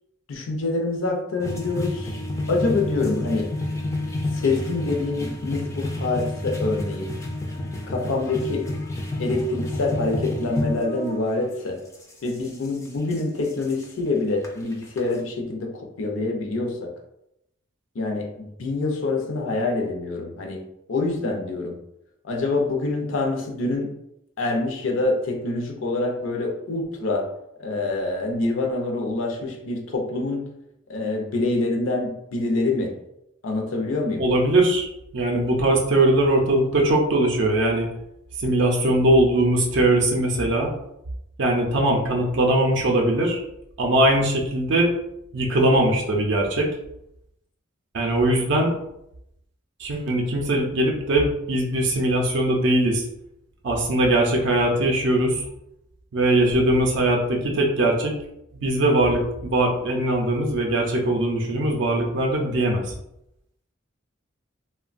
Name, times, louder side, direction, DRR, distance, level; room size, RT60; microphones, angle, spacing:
voice 1, 0.3-2.2 2.5-3.5 4.3-7.1 7.9-8.7 9.2-11.8 12.2-16.9 17.9-20.6 20.9-21.8 22.2-23.9 24.4-27.3 27.6-30.5 30.9-33.0 33.4-34.2, left 3 dB, 75° left, 3 dB, 0.5 m, -26 dB
sound 1, 1.4-11.2 11.9-13.8 14.4-14.5 14.7-15.1, left 1 dB, 15° left, 0.3 m, -30 dB
voice 2, 34.2-37.9 38.4-40.7 41.4-43.4 43.8-44.9 45.3-46.7 47.9-48.7 49.8-53.1 53.6-55.4 56.1-58.2 58.5-62.9, right 1 dB, 60° right, 1 dB, 0.4 m, -21 dB
2.9 x 2.1 x 2.4 m, 0.82 s
head